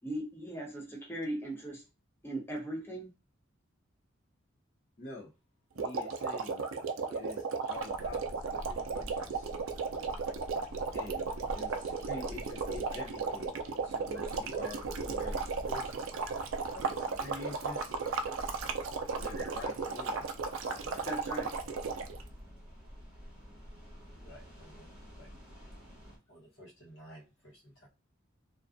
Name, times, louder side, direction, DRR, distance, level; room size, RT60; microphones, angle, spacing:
voice 1, 0.0-1.8 2.2-3.1 19.3-19.5 21.0-21.5, right 1 dB, 10° left, -2 dB, 0.6 m, -38 dB
voice 2, 5.0-5.3 5.7-6.6 7.1-9.5 10.9-13.6 13.8-15.9 16.7-17.9 19.1-20.3 20.6-21.1, left 2 dB, 50° left, -6 dB, 0.7 m, -46 dB
sound 1, 5.8-22.2, right 4 dB, 85° right, 0.4 m, -35 dB
sound 2, 7.7-26.2, equal, 5° right, 1.2 m, -48 dB
voice 3, 24.2-24.9 25.2-25.3 26.3-27.9, equal, 70° left, -3 dB, 1.1 m, -54 dB
2.4 x 2.2 x 2.5 m, 0.29 s
head